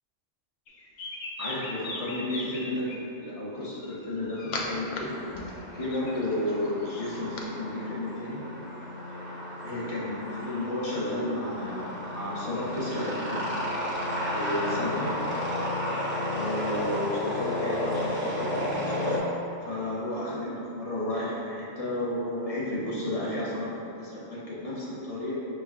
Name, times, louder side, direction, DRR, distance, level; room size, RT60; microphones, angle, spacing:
sound 1, 0.7-3.0 3.8-5.0 5.3-7.4, left 2 dB, 80° left, 0.4 m, -38 dB
voice 1, 1.4-5.1 5.7-8.4 9.6-13.4 14.2-15.1 16.3-18.6 19.6-25.4, left 1 dB, 35° left, -8 dB, 0.7 m, -32 dB
sound 2, 5.0-19.2, left 1 dB, 15° right, 0.4 m, -32 dB
5.7 x 3.1 x 2.4 m, 2.8 s
omnidirectional pair, 1.3 m